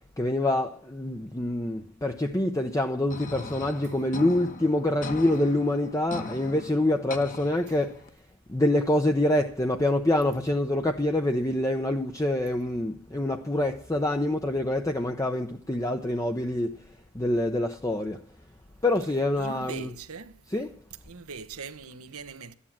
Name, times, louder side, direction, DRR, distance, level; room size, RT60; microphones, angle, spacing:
voice 1, 0.2-8.1 8.5-16.9 17.1-18.3 18.8-19.9 20.5-20.8, left 1 dB, 15° left, 0.7 m, -26 dB
sound 1, 3.1-8.1, left 2 dB, 40° left, 1.2 m, -40 dB
voice 2, 19.4-20.4 21.1-22.5, right 4 dB, 85° right, 1.1 m, -41 dB
12.5 x 9.8 x 7.3 m
head